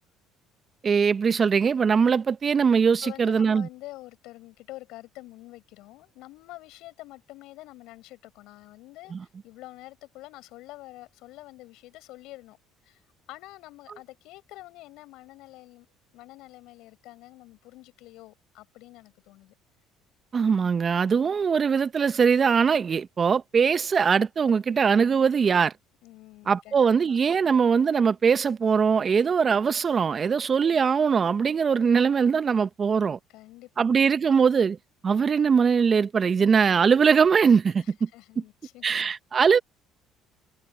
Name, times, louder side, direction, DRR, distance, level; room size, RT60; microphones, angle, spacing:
voice 1, 0.8-3.7 9.1-9.2 20.3-25.7 26.5-33.2 33.8-34.8 35.0-38.1 38.8-39.6, right 6 dB, 40° right, 1.3 m, -21 dB
voice 2, 2.8-12.6 12.8-13.0 13.3-15.9 16.1-19.5 26.0-26.7 27.1-27.2 30.7-30.8 33.3-33.9 36.2-36.3 37.8-39.0, left 18 dB, 70° left, 7.8 m, -47 dB
hypercardioid pair, 65°, 0 cm